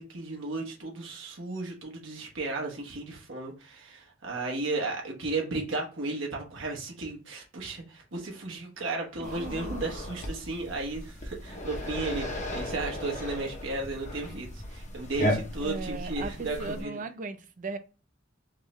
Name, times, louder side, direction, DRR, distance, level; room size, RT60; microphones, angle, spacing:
voice 1, 0.0-16.9, right 3 dB, 75° right, 1.1 m, -34 dB
sound 1, 9.2-16.8, left 1 dB, 40° left, 0.9 m, -35 dB
voice 2, 9.2-9.7 15.6-17.8, right 3 dB, 40° right, 0.5 m, -37 dB
3.6 x 3.0 x 3.2 m
head